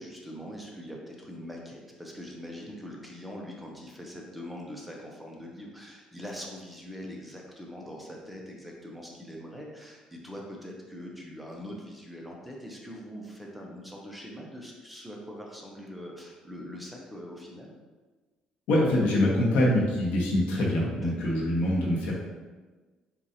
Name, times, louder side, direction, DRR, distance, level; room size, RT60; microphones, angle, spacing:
voice 1, 0.0-17.7 21.0-21.3, equal, 5° right, -2 dB, 0.7 m, -42 dB
voice 2, 18.7-22.1, left 1 dB, 90° left, -4 dB, 1.2 m, -24 dB
7.1 x 2.5 x 2.8 m, 1.3 s
cardioid pair, 135°, 2 cm